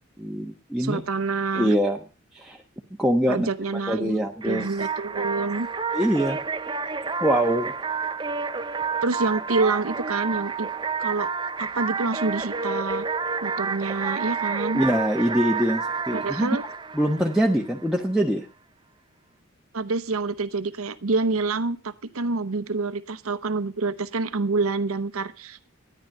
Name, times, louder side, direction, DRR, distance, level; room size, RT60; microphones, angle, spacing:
voice 1, 0.2-1.0 1.5-2.0 2.3-2.6 3.0-3.5 3.9-4.8 5.9-6.4 7.2-7.7 14.7-16.6 16.9-18.5, equal, ahead, -1 dB, 1.1 m, -23 dB
voice 2, 0.8-1.7 3.3-5.7 9.0-10.7 11.0-11.3 11.6-13.1 13.4-14.8 16.1-16.6 19.7-25.7, right 3 dB, 85° right, 14 dB, 0.9 m, -27 dB
sound 1, 4.4-17.9, right 5 dB, 20° right, 0.6 m, -30 dB
14.0 x 10.5 x 6.6 m, 0.35 s
head